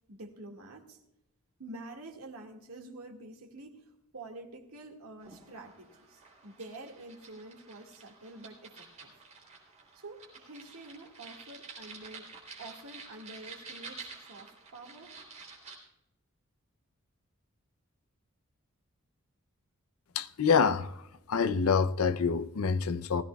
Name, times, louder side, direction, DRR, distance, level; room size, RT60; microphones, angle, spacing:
voice 1, 0.1-1.0 1.6-9.1 9.9-15.1, right 2 dB, 85° right, 2.0 m, -48 dB
sound 1, 5.2-15.8, right 4 dB, 35° right, 3.3 m, -50 dB
voice 2, 20.2-21.0 21.3-23.2, left 5 dB, 85° left, 0.6 m, -26 dB
19.5 x 16.0 x 2.3 m
head